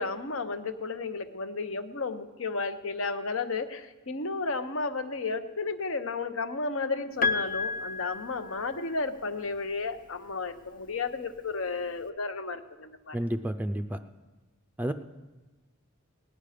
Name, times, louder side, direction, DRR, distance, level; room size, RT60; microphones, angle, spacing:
voice 1, 0.0-13.2, left 3 dB, 70° left, 9 dB, 0.9 m, -33 dB
Piano, 7.2-9.2 10.5-10.6, left 4 dB, 40° left, 0.5 m, -31 dB
voice 2, 13.1-14.0 14.8-14.9, right 1 dB, 10° right, 7 dB, 0.4 m, -30 dB
18.5 x 10.5 x 5.0 m, 1.2 s
head